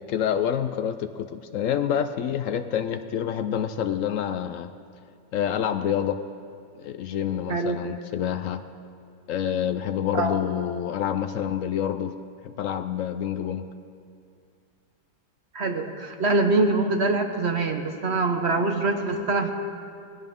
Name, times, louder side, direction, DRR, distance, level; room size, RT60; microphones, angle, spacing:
voice 1, 0.0-4.7 5.3-6.2 6.8-8.6 9.3-12.2 12.4-13.7, left 9 dB, 85° left, 10 dB, 0.7 m, -27 dB
voice 2, 15.5-19.5, right 3 dB, 45° right, 4 dB, 1.0 m, -24 dB
19.0 x 16.0 x 3.6 m, 2.3 s
omnidirectional pair, 1.9 m